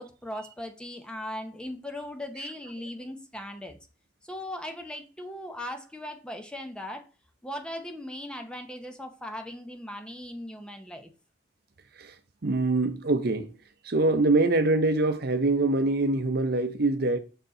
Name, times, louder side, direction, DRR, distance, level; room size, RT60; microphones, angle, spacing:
voice 1, 0.0-3.8 4.2-7.1 7.4-11.1, left 1 dB, 5° left, 0.7 m, -38 dB
voice 2, 12.4-13.6 13.8-17.2, right 2 dB, 55° right, 0.7 m, -24 dB
6.5 x 4.4 x 3.8 m
head